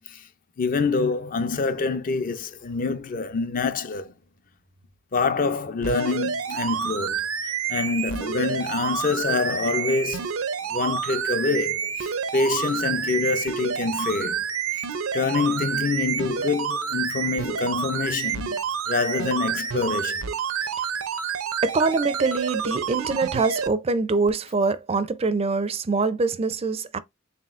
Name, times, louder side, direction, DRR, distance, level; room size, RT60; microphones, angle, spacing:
voice 1, 0.6-4.1 5.1-7.3 7.7-10.3 10.7-14.4 14.7-14.8 15.1-18.6 18.9-20.2, left 4 dB, 40° left, 0.5 m, -26 dB
sound 1, 5.8-23.7 24.3-24.4, right 7 dB, 80° right, 0.6 m, -28 dB
voice 2, 21.6-27.0, right 4 dB, 30° right, 0.4 m, -24 dB
4.3 x 3.7 x 2.4 m
head